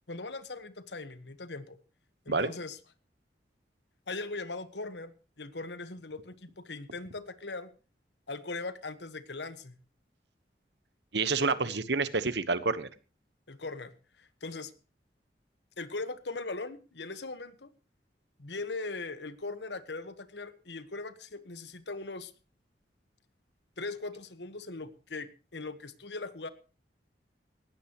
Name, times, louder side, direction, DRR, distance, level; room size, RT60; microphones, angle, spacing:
voice 1, 0.1-1.8 2.2-2.8 4.1-7.7 8.3-9.8 11.6-11.8 13.5-13.9 14.2-14.7 15.8-17.7 18.4-22.3 23.8-26.5, left 3 dB, 80° left, 13 dB, 1.4 m, -40 dB
voice 2, 11.1-12.9, right 4 dB, 80° right, 14 dB, 1.2 m, -28 dB
19.0 x 14.5 x 3.1 m, 0.35 s
head